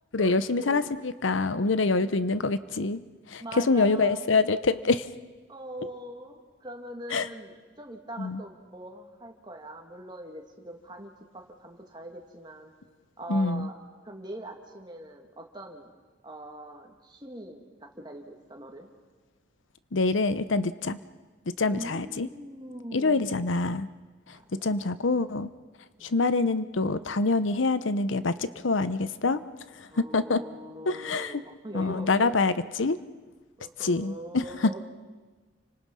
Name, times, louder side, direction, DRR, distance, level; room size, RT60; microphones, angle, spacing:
voice 1, 0.1-5.1 7.1-7.3 8.2-8.4 13.3-13.7 19.9-21.0 21.5-22.3 22.9-23.9 24.3-25.5 26.0-29.4 29.7-30.4 30.9-31.4 31.7-32.5 32.8-33.0 33.8-34.8, left 3 dB, 90° left, 14 dB, 0.9 m, -26 dB
voice 2, 1.9-2.3 3.4-4.2 5.5-12.7 13.2-13.7 14.0-15.9 16.2-18.9 21.7-23.4 24.3-24.8 26.0-26.1 29.9-32.4 33.6-34.8, right 1 dB, 25° right, 2 dB, 2.5 m, -42 dB
30.0 x 25.5 x 5.7 m, 1.3 s
head